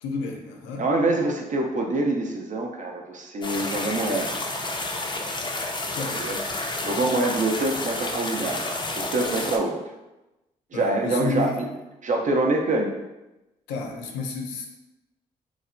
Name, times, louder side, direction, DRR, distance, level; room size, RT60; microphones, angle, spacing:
voice 1, 0.0-0.8 5.9-6.4 10.7-11.6 13.7-14.7, left 4 dB, 80° left, 3 dB, 0.4 m, -31 dB
voice 2, 0.8-4.4 6.2-6.4 6.8-8.6 9.0-9.8 10.7-11.7 12.0-12.9, right 2 dB, 45° right, 1 dB, 0.4 m, -25 dB
sound 1, 3.4-9.6, left 2 dB, 25° left, 0.4 m, -30 dB
3.0 x 2.0 x 2.5 m, 0.99 s
hypercardioid pair, 40°, 19 cm